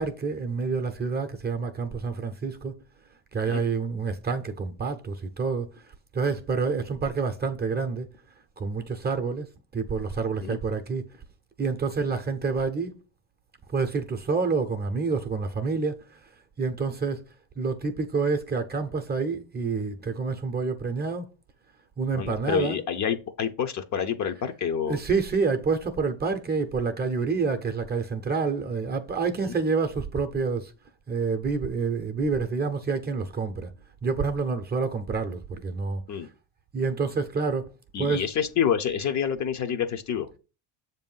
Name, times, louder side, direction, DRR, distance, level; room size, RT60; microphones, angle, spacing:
voice 1, 0.0-2.7 3.3-5.7 6.1-8.1 8.6-9.5 9.7-11.0 11.6-12.9 13.7-16.0 16.6-17.2 17.6-21.3 22.0-22.8 24.9-30.7 31.1-33.7 34.0-36.0 36.7-37.7 38.0-38.2, right 4 dB, 20° right, 0.6 m, -28 dB
voice 2, 22.1-25.0 29.4-29.5 36.1-36.3 37.9-40.4, left 8 dB, 40° left, 0.6 m, -28 dB
6.9 x 2.7 x 5.4 m
cardioid pair, 115°, 44 cm